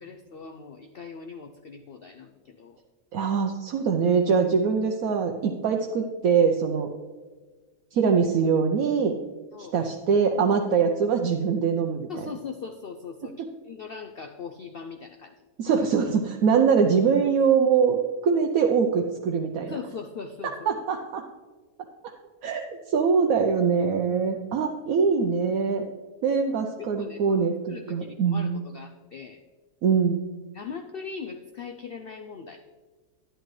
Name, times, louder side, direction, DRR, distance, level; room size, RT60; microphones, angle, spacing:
voice 1, 0.0-2.8 9.5-9.8 12.1-13.3 13.6-15.3 19.7-20.7 26.8-29.4 30.5-32.6, left 5 dB, 90° left, 5 dB, 0.5 m, -40 dB
voice 2, 3.1-6.9 7.9-9.2 9.7-12.3 15.6-19.8 20.7-21.2 22.4-25.8 26.2-28.6 29.8-30.2, right 6 dB, 70° right, 3 dB, 1.1 m, -23 dB
11.0 x 10.5 x 3.2 m, 1.3 s
omnidirectional pair, 1.7 m